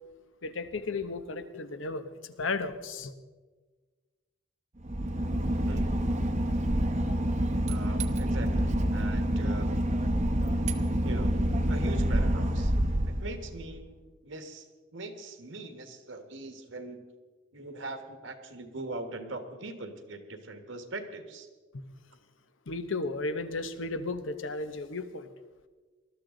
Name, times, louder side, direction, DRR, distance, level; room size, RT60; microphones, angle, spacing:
voice 1, 0.4-3.1 21.7-21.8 22.7-25.3, left 3 dB, 75° left, 10 dB, 1.0 m, -34 dB
Boat Water vehicle / Engine, 4.8-13.8, equal, 35° right, 0.9 m, -27 dB
voice 2, 7.7-9.7 11.0-11.3 11.7-12.7 13.2-17.0 17.5-21.5, right 2 dB, 75° right, 6 dB, 1.7 m, -41 dB
20.0 x 13.0 x 3.9 m, 1.4 s
head